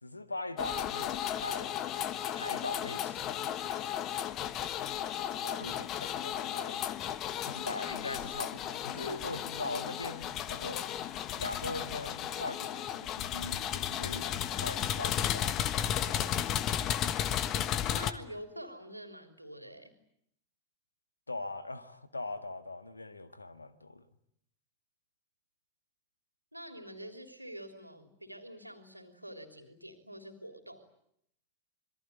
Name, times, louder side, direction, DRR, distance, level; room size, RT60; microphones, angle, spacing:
voice 1, 0.0-1.8 2.3-3.6 5.3-6.9 7.5-10.9 11.4-15.5 15.9-16.7 21.3-24.1, left 2 dB, 80° left, 1.6 m, -41 dB
sound 1, 0.6-18.1, left 10 dB, 35° left, 1.3 m, -34 dB
voice 2, 5.4-5.8 17.9-19.9 26.5-30.9, equal, 85° right, 3.4 m, -46 dB
26.5 x 22.5 x 9.4 m
figure-of-eight pair, 90°, 0 cm